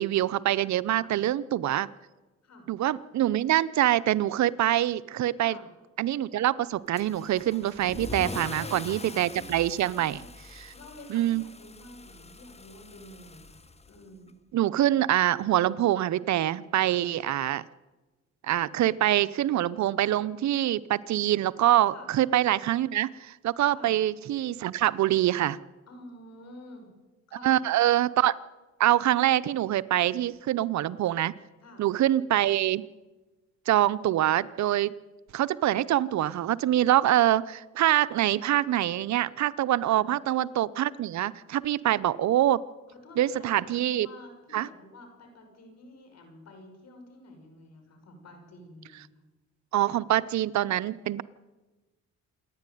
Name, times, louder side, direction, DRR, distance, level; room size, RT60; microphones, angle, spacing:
voice 1, 0.0-1.9 2.7-5.6 6.0-10.2 10.6-10.7 11.1-11.4 14.5-17.6 18.5-25.6 27.4-28.4 28.8-31.3 31.8-32.8 33.7-34.9 35.3-42.6 43.2-44.1 44.5-44.7 49.7-51.2, right 13 dB, 65° right, 17 dB, 0.7 m, -25 dB
Car / Engine starting / Accelerating revving vroom, 6.9-14.3, left 3 dB, 20° left, 1.4 m, -43 dB
voice 2, 8.3-9.5 9.9-10.3 10.7-14.4 16.7-17.0 21.9-22.1 23.7-23.9 25.9-26.9 27.3-27.6 31.6-31.9 39.8-40.1 41.8-42.0 42.9-49.1 49.8-50.0, left 2 dB, 60° left, 5 dB, 6.1 m, -49 dB
27.5 x 10.5 x 9.3 m, 1.2 s
cardioid pair, 90°, 30 cm